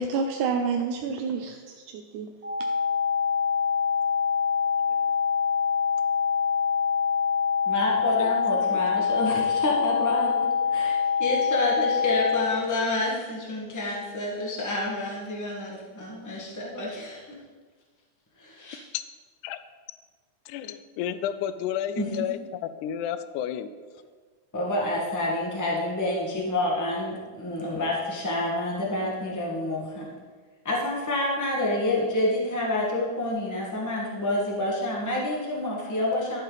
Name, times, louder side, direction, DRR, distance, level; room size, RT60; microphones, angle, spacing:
voice 1, 0.0-2.3, right 5 dB, 80° right, 3 dB, 2.1 m, -29 dB
sound 1, 2.4-12.4, left 6 dB, 35° right, 1.7 m, -25 dB
voice 2, 7.6-17.4 18.4-18.8 21.9-22.3 24.5-30.1 30.6-36.4, left 1 dB, 15° left, -3 dB, 0.6 m, -28 dB
voice 3, 20.5-22.4 22.8-23.7, left 10 dB, 80° left, 12 dB, 2.0 m, -31 dB
12.0 x 8.1 x 4.1 m, 1.5 s
omnidirectional pair, 3.7 m